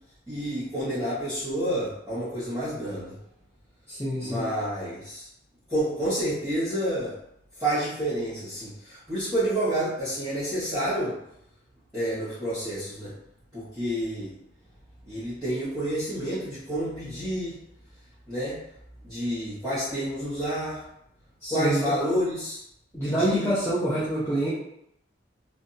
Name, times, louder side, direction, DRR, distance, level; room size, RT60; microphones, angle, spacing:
voice 1, 0.3-3.2 4.2-5.3 5.7-7.1 7.6-11.2 11.9-13.1 13.5-14.3 15.0-17.6 18.3-18.6 19.0-20.8 21.5-22.6 23.0-23.5, right 1 dB, 5° right, -16 dB, 1.2 m, -29 dB
voice 2, 3.9-4.4 21.4-21.9 22.9-24.5, right 1 dB, 10° left, -11 dB, 0.6 m, -26 dB
2.7 x 2.2 x 2.6 m, 0.76 s
head